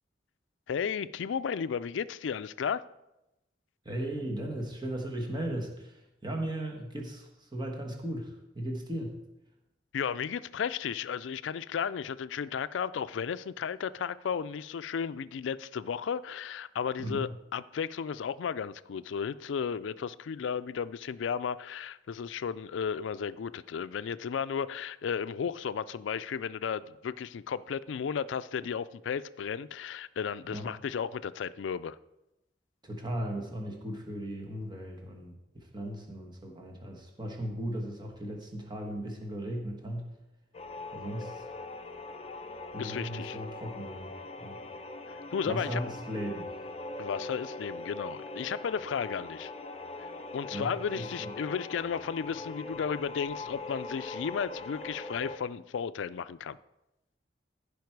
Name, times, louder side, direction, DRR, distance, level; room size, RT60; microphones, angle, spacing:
voice 1, 0.7-2.8 9.9-32.0 42.8-43.4 45.1-45.8 47.0-49.5 50.0-50.1 50.3-56.6, left 7 dB, 70° left, 0.4 m, -34 dB
voice 2, 3.8-9.2 17.0-17.3 30.5-30.7 32.8-40.1 40.9-41.4 42.7-44.1 44.4-44.5 45.4-46.5 50.5-51.3, right 1 dB, 25° right, 1.4 m, -37 dB
sound 1, 40.5-55.4, left 2 dB, 35° left, 0.7 m, -41 dB
15.5 x 5.2 x 4.7 m
head